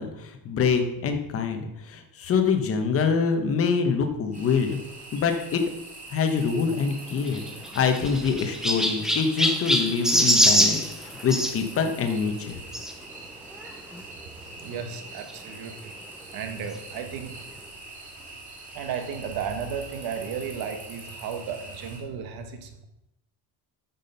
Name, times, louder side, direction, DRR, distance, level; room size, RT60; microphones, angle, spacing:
voice 1, 0.0-4.8 5.1-5.6 6.1-7.4 7.7-12.6, left 5 dB, 30° left, 6 dB, 1.1 m, -25 dB
sound 1, 4.3-22.0, right 2 dB, 20° right, 2.4 m, -44 dB
Chirp tweet, 7.2-11.5 12.7-12.9 13.6-13.7 13.9-14.0 15.3-15.4, equal, ahead, 0.5 m, -23 dB
voice 2, 14.6-15.9 16.3-17.3 18.7-22.8, right 7 dB, 55° right, 6 dB, 1.4 m, -34 dB
9.3 x 6.2 x 5.5 m, 0.86 s
cardioid pair, 175°, 43 cm